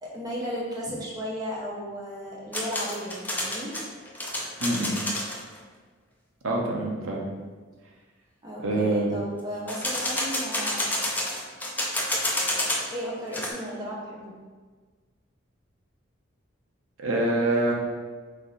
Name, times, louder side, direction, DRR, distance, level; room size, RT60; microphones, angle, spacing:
voice 1, 0.0-3.7 8.4-11.0 12.9-14.3, equal, 20° right, -5 dB, 0.9 m, -35 dB
sound 1, 2.5-5.4 9.7-12.9 13.2-13.5, left 1 dB, 10° left, 0.4 m, -29 dB
voice 2, 4.6-5.0 6.4-7.3 8.6-9.1 17.0-17.7, right 1 dB, 90° right, -1 dB, 0.8 m, -25 dB
3.6 x 3.3 x 4.1 m, 1.4 s
head